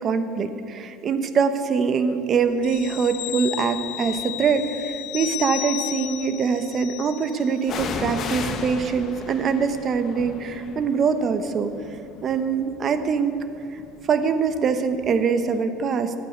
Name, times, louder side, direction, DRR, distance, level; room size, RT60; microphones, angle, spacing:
voice 1, 0.0-11.7 12.2-13.4 13.7-13.8 14.1-16.1, right 5 dB, 35° right, 10 dB, 1.0 m, -23 dB
sound 1, 2.6-7.7 8.1-8.2, left 17 dB, 60° left, 0.4 m, -34 dB
sound 2, 2.7-3.1 3.8-4.7 7.6-15.3 15.6-15.7, left 6 dB, 40° left, 1.1 m, -36 dB
14.5 x 8.4 x 9.6 m, 2.7 s
cardioid pair, 140°, 0 cm